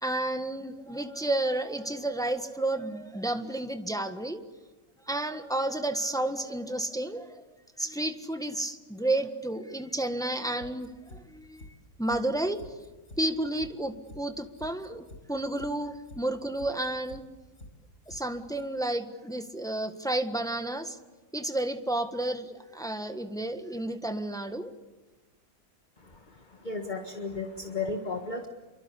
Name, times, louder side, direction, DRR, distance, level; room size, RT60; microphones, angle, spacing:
voice 1, 0.0-4.4 5.1-7.4 7.8-11.7 12.0-12.6 13.2-17.2 18.1-21.0 21.3-24.7, right 1 dB, 5° left, 7 dB, 1.4 m, -31 dB
sound 1, 10.6-11.2 11.5-11.7 12.0-12.2 12.5-13.2 13.5-13.7 14.0-14.2 14.5-15.2 15.5-15.7 16.0-16.2 16.5-17.2 17.5-17.7 18.0-18.2 18.5-18.6, left 1 dB, 55° left, 5.1 m, -47 dB
voice 2, 26.0-28.5, left 3 dB, 30° left, 5 dB, 1.8 m, -35 dB
28.5 x 24.0 x 8.5 m, 1.2 s
omnidirectional pair, 1.5 m